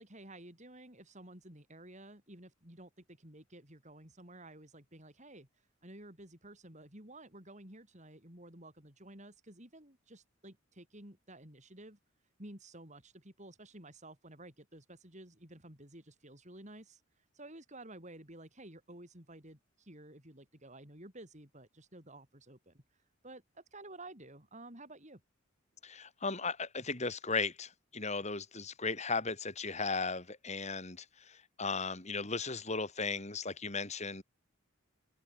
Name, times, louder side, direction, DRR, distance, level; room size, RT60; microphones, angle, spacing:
voice 1, 0.0-5.5 5.8-12.0 12.4-17.0 17.3-22.8 23.2-25.2, right 1 dB, 35° right, 6.9 m, -52 dB
voice 2, 25.8-34.2, left 4 dB, 35° left, 3.8 m, -36 dB
open air
head